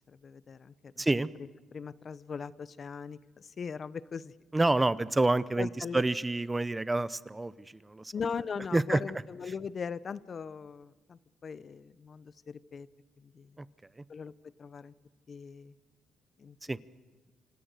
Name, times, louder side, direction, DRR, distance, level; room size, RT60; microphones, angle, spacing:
voice 1, 0.1-1.0 1.7-4.3 5.6-6.0 8.1-12.9 13.2-13.5 14.1-14.3 14.6-14.9 15.3-15.7 16.4-16.6, left 6 dB, 45° left, 17 dB, 0.7 m, -40 dB
voice 2, 1.0-1.3 4.5-7.5 7.8-8.1 8.7-9.0 16.7-16.8, right 2 dB, 15° right, 17 dB, 0.7 m, -27 dB
26.0 x 26.0 x 6.7 m, 1.3 s
cardioid pair, 90°, 0 cm